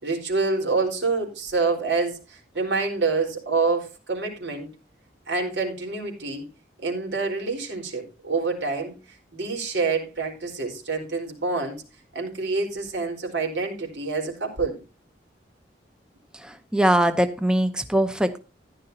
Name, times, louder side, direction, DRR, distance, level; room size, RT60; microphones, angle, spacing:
voice 1, 0.0-4.7 5.3-6.4 6.8-11.8 12.1-14.8, right 4 dB, 75° right, 2 dB, 4.3 m, -27 dB
voice 2, 16.4-18.4, right 1 dB, 5° right, 9 dB, 0.8 m, -22 dB
14.5 x 11.0 x 2.8 m, 0.29 s
head